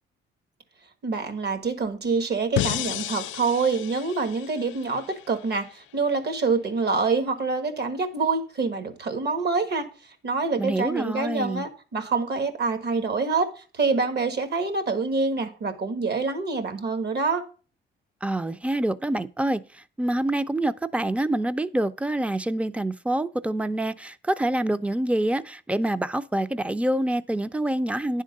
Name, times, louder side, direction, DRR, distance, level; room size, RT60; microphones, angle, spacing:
voice 1, 1.0-17.4, right 4 dB, 55° right, 1.5 m, -26 dB
sound 1, 2.6-5.7, left 14 dB, 75° left, 0.4 m, -32 dB
voice 2, 10.6-11.6 18.2-28.2, right 1 dB, 5° right, 0.5 m, -26 dB
10.0 x 3.7 x 6.5 m
cardioid pair, 90°, 20 cm